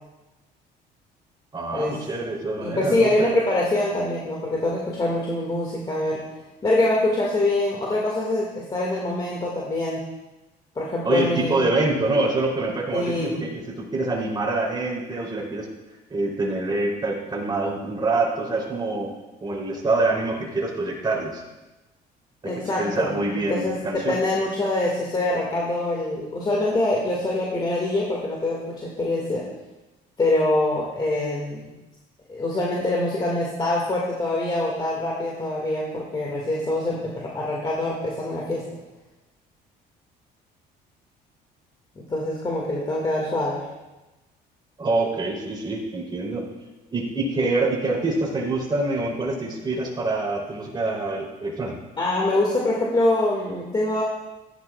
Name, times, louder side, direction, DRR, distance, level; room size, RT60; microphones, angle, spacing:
voice 1, 1.5-3.3 11.0-15.7 16.1-19.1 19.4-21.4 22.8-24.2 44.8-46.4 46.9-51.8, right 2 dB, 25° right, -3 dB, 3.4 m, -25 dB
voice 2, 2.6-6.2 6.6-10.0 10.8-11.6 12.9-13.4 22.4-23.1 23.5-23.8 24.1-29.4 30.2-31.7 32.3-38.8 42.1-43.7 52.0-54.0, left 2 dB, 25° left, -4 dB, 2.1 m, -24 dB
15.0 x 10.5 x 2.4 m, 1.1 s
cardioid pair, 110°, 17 cm